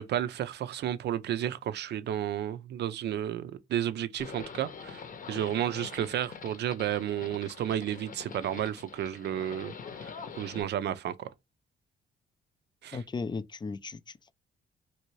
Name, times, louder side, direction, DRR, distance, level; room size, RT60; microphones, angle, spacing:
voice 1, 0.0-9.7 10.0-11.3 12.8-13.0, right 10 dB, 60° right, 0.5 m, -32 dB
Livestock farm animals working animals, 4.2-10.6, left 5 dB, 45° left, 0.7 m, -44 dB
voice 2, 12.9-14.3, left 4 dB, 20° left, 0.4 m, -36 dB
3.2 x 2.7 x 3.0 m
cardioid pair, 90°, 20 cm